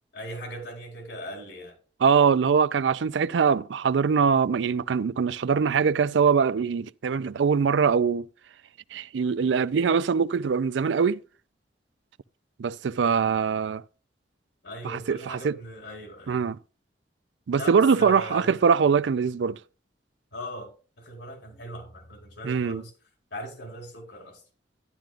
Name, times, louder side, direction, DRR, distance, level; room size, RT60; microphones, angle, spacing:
voice 1, 0.1-1.7 14.6-16.4 17.5-18.6 20.3-20.7 21.0-22.9 23.3-24.4, equal, 90° left, 4.3 m, -39 dB
voice 2, 2.0-8.3 8.9-11.2 12.6-13.8 14.8-15.6 16.3-16.6 17.5-19.6 22.4-22.8, right 6 dB, 90° right, 0.4 m, -23 dB
12.0 x 10.5 x 2.5 m
head